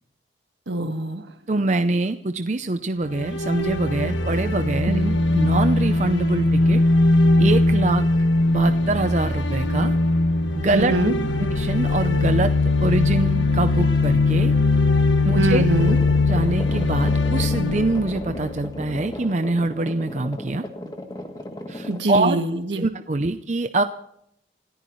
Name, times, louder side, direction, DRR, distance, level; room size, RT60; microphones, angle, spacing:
voice 1, 0.7-1.2 4.9-5.1 10.7-11.1 15.4-16.0 21.9-22.9, right 2 dB, 75° right, 7 dB, 1.6 m, -23 dB
voice 2, 1.5-5.0 5.3-6.8 7.4-8.0 8.5-10.0 10.6-10.9 11.4-12.5 12.8-14.5 15.2-15.7 16.3-20.6 21.7-22.4 22.8-23.8, right 2 dB, 40° right, 8 dB, 0.6 m, -24 dB
sound 1, 3.0-19.1, left 2 dB, 85° left, 1.5 m, -20 dB
sound 2, 15.8-22.0, left 1 dB, 20° left, 1.5 m, -36 dB
28.0 x 14.0 x 3.1 m, 0.74 s
head